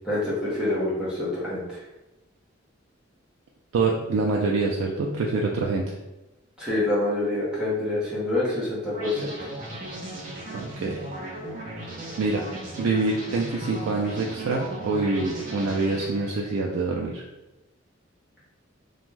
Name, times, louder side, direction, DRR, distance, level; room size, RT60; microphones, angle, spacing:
voice 1, 0.0-1.8 6.6-9.5, left 2 dB, 5° right, -9 dB, 0.7 m, -26 dB
voice 2, 3.7-6.0 10.5-11.0 12.2-12.4 12.8-17.2, right 3 dB, 90° right, -1 dB, 0.3 m, -25 dB
sound 1, 8.9-16.6, right 1 dB, 40° right, 0.6 m, -37 dB
2.5 x 2.2 x 3.1 m, 1.0 s
head